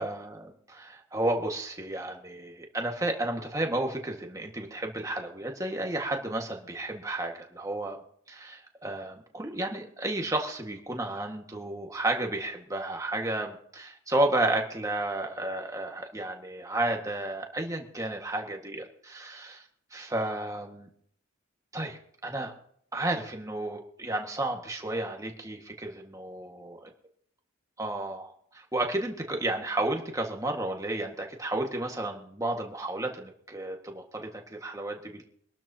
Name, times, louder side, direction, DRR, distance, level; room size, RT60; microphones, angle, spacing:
voice 1, 0.0-8.0 8.3-19.6 19.9-20.9 21.7-22.5 22.9-26.7 27.8-35.2, right 2 dB, 15° right, 2 dB, 1.7 m, -32 dB
24.0 x 12.5 x 2.9 m, 0.66 s
head